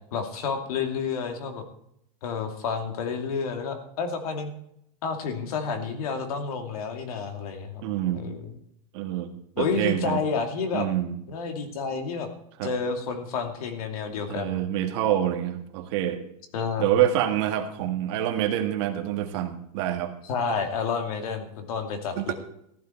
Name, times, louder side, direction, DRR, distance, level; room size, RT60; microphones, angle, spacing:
voice 1, 0.1-1.7 2.2-4.5 5.0-7.8 8.1-8.6 9.6-10.9 11.3-12.3 12.6-14.6 16.5-16.9 17.8-17.9 20.3-22.3, left 5 dB, 70° left, 5 dB, 2.7 m, -30 dB
voice 2, 7.8-8.3 8.9-10.2 10.7-11.2 12.6-12.7 14.3-16.2 16.8-20.1 22.2-22.3, right 11 dB, 45° right, 5 dB, 1.7 m, -26 dB
15.0 x 11.5 x 4.5 m, 0.74 s
supercardioid pair, 170°, 19 cm